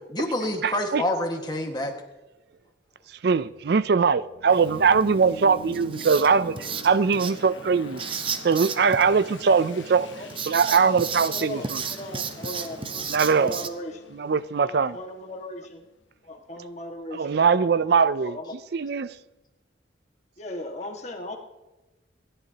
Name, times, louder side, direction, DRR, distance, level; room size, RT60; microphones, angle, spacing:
voice 1, 0.1-2.0 13.3-13.4, left 1 dB, 20° left, 1.6 m, -27 dB
voice 2, 0.6-1.0 3.2-6.6 6.8-8.0 8.4-10.1 10.5-11.8 13.1-13.6 14.2-15.0 17.1-18.3 18.7-19.1, right 5 dB, 55° right, 0.4 m, -21 dB
sound 1, 3.2-15.9, left 1 dB, 80° left, 1.1 m, -45 dB
Writing, 4.5-13.7, right 6 dB, 30° right, 0.7 m, -35 dB
voice 3, 11.3-14.2 14.7-15.8 16.2-17.4 18.1-18.5 20.4-21.4, left 1 dB, 35° left, 1.7 m, -38 dB
27.0 x 11.5 x 2.9 m
head